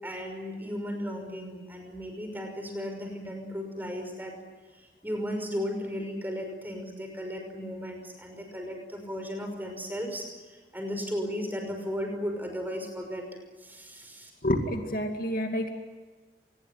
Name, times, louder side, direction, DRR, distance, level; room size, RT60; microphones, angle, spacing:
voice 1, 0.0-4.3 5.0-10.3 10.7-13.2 13.6-14.3, equal, 10° right, 4 dB, 5.7 m, -35 dB
voice 2, 14.4-15.7, equal, 50° left, 4 dB, 2.4 m, -28 dB
27.0 x 21.0 x 9.4 m, 1.3 s
head